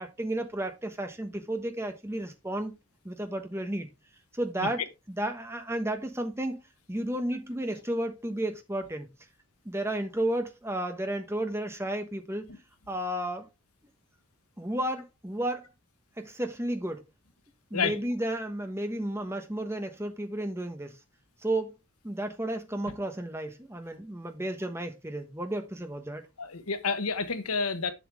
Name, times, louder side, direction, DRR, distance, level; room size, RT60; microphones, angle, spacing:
voice 1, 0.0-2.7 3.0-3.9 4.3-4.8 5.1-6.6 6.9-9.1 9.6-12.5 12.9-13.5 14.6-15.7 16.2-17.0 17.7-21.0 21.4-21.7 22.0-26.3, right 1 dB, 10° right, 1.0 m, -32 dB
voice 2, 26.4-27.9, left 5 dB, 85° left, 1.1 m, -29 dB
7.4 x 6.9 x 3.4 m
head